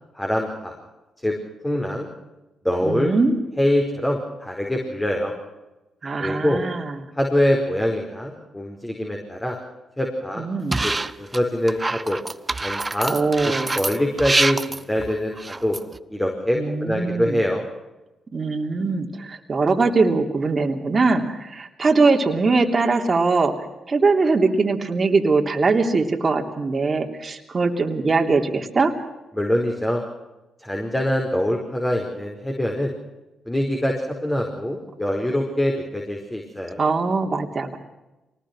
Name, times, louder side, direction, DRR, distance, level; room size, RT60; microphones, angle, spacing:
voice 1, 0.1-0.7 1.2-1.3 1.6-2.1 2.6-3.1 3.6-5.3 6.2-6.6 7.2-9.6 10.0-10.4 10.8-10.9 11.2-12.2 12.6-13.2 13.4-15.8 16.1-17.6 29.3-30.0 30.6-32.9 33.5-36.8, left 1 dB, 10° left, 1 dB, 4.8 m, -24 dB
voice 2, 2.8-3.4 6.0-7.0 10.4-10.8 13.1-13.8 16.6-17.4 18.3-28.9 36.8-37.8, right 3 dB, 40° right, 3 dB, 3.1 m, -21 dB
sound 1, 10.7-11.4 11.7-16.0, right 3 dB, 25° right, 0.9 m, -25 dB
24.0 x 19.5 x 6.2 m, 1.0 s
supercardioid pair, 55°, 0 cm